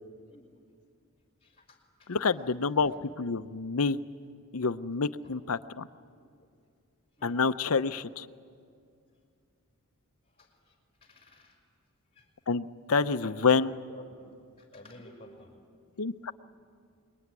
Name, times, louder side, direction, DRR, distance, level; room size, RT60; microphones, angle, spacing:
voice 1, 1.4-2.3 2.8-3.0 5.2-5.5 7.1-7.4 10.2-11.6 12.1-12.3 12.9-14.2 14.6-15.5 15.9-16.0, left 1 dB, 25° left, 2 dB, 4.8 m, -52 dB
voice 2, 2.1-2.9 3.2-4.0 4.5-5.9 7.2-8.3 12.5-13.7 16.0-16.3, left 4 dB, 70° left, 11 dB, 0.7 m, -28 dB
25.5 x 22.5 x 9.6 m, 2.3 s
head